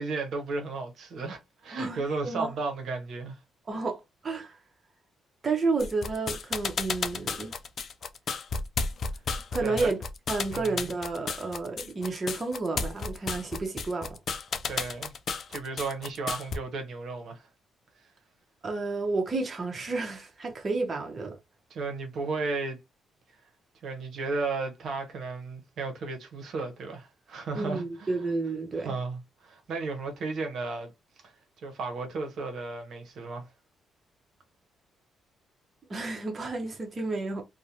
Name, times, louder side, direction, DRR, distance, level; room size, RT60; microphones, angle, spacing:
voice 1, 0.0-3.4 9.6-9.9 10.5-10.9 14.6-15.1 15.5-17.5 21.7-22.8 23.8-28.1 28.8-30.9 31.6-33.5, right 3 dB, 65° right, 0.7 m, -34 dB
voice 2, 1.7-2.5 3.7-4.6 5.4-7.5 9.5-10.0 10.3-14.2 18.6-21.4 27.5-29.0 35.9-37.4, right 3 dB, 35° right, 0.6 m, -31 dB
sound 1, 5.8-16.6, left 5 dB, 55° left, 0.4 m, -33 dB
2.4 x 2.0 x 2.8 m
cardioid pair, 90°, 0 cm